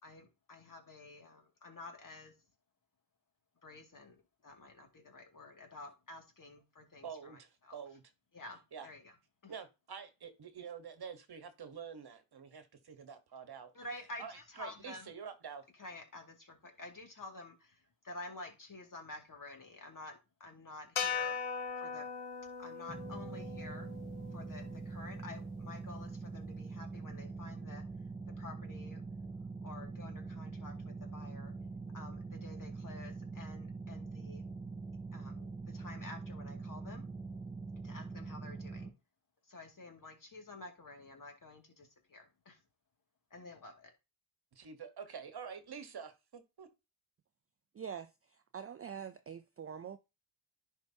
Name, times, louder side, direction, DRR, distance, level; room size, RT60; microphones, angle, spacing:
voice 1, 0.0-2.3 3.6-7.8 8.3-9.1 9.4-9.5 13.7-15.1 15.8-21.4 21.8-22.1 22.6-23.9 24.3-27.8 28.3-29.0 29.6-31.5 31.9-34.4 35.1-37.1 37.8-38.9 39.4-42.6 43.3-43.9, left 2 dB, 40° left, 2.3 m, -50 dB
voice 2, 7.0-8.0 8.7-8.9 9.5-13.7 14.2-15.6 44.5-46.7, right 6 dB, 50° right, 1.3 m, -47 dB
sound 1, 21.0-25.3, left 6 dB, 90° left, 1.2 m, -40 dB
sound 2, 22.9-38.9, right 4 dB, 10° right, 2.9 m, -44 dB
voice 3, 47.8-48.1 48.5-50.0, right 7 dB, 30° right, 0.4 m, -44 dB
10.5 x 4.7 x 2.8 m
cardioid pair, 75°, 49 cm